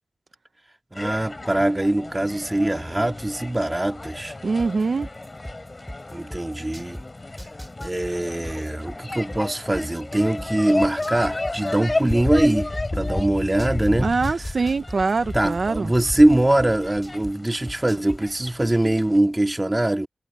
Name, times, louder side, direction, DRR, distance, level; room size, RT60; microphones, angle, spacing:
sound 1, 0.9-19.2, left 2 dB, 35° left, 4.4 m, -32 dB
voice 1, 0.9-4.3 6.1-7.0 7.8-14.1 15.3-20.1, right 1 dB, 20° right, 2.3 m, -22 dB
voice 2, 4.4-5.1 14.0-15.9, right 4 dB, 65° right, 0.8 m, -23 dB
sound 2, 4.6-7.0 7.4-10.5 10.8-13.9 14.2-17.3 17.7-18.2, equal, ahead, 5.1 m, -37 dB
wide cardioid pair, 60°, 0 cm